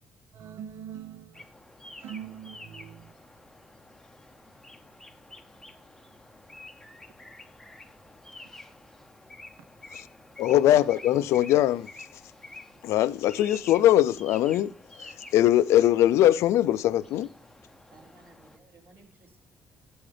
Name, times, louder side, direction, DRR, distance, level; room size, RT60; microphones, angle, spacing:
voice 1, 0.3-1.5 2.0-3.2, right 9 dB, 70° right, 0.6 m, -42 dB
sound 1, 1.3-18.6, left 2 dB, 10° left, 0.7 m, -49 dB
voice 2, 10.4-12.1 12.8-17.3, left 13 dB, 90° left, 0.4 m, -22 dB
voice 3, 17.9-19.4, right 3 dB, 50° right, 3.7 m, -56 dB
12.5 x 7.8 x 3.3 m
cardioid pair, 115°, 5 cm